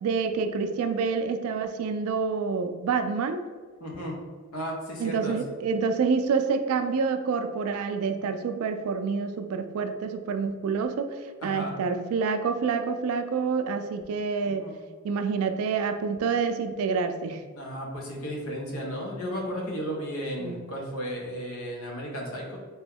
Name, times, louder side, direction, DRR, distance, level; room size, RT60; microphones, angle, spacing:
voice 1, 0.0-3.4 5.0-14.7 15.0-17.4 20.4-20.6, right 5 dB, 85° right, 8 dB, 0.3 m, -27 dB
voice 2, 3.8-4.2 4.5-5.6 11.4-11.7 14.4-14.8 17.6-22.6, equal, 80° left, -1 dB, 0.8 m, -34 dB
2.9 x 2.2 x 3.4 m, 1.5 s
head